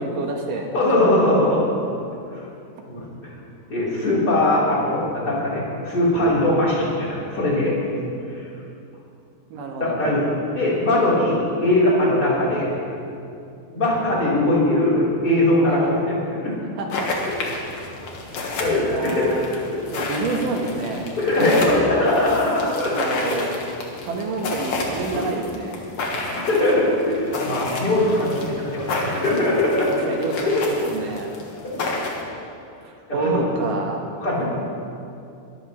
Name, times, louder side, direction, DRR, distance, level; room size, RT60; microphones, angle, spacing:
voice 1, 0.0-0.7 9.5-10.2 15.6-15.9 16.8-17.1 18.9-19.5 19.9-21.1 22.9-23.5 24.0-25.8 29.9-31.4 32.8-34.0, right 3 dB, 70° right, 1 dB, 2.8 m, -28 dB
voice 2, 0.7-1.7 2.3-2.5 2.8-3.4 3.7-8.0 8.3-8.5 9.7-10.3 10.5-12.7 13.7-16.6 18.4-19.8 21.2-23.0 25.1-25.2 26.1-30.1 30.5-30.6 33.1-33.4 34.2-34.4, left 1 dB, 25° left, -8 dB, 4.3 m, -21 dB
sound 1, 16.9-32.2, left 2 dB, 50° left, 2.2 m, -31 dB
22.5 x 13.5 x 3.2 m, 2.6 s
omnidirectional pair, 4.2 m